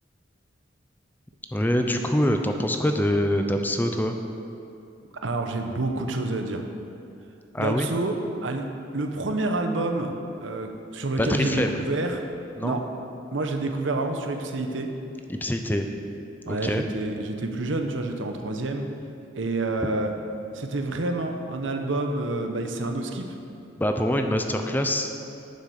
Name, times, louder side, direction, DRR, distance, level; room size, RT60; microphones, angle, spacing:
voice 1, 1.5-4.2 7.5-7.9 11.2-11.7 12.6-12.8 15.3-15.9 16.5-16.8 23.8-25.1, left 1 dB, 10° left, 5 dB, 0.5 m, -24 dB
voice 2, 5.2-6.6 7.6-8.1 8.4-8.7 8.9-10.1 10.4-12.2 12.6-12.9 13.3-14.9 16.5-18.9 19.3-20.1 20.5-23.3, right 2 dB, 90° right, 5 dB, 0.9 m, -28 dB
9.7 x 6.9 x 6.5 m, 2.6 s
head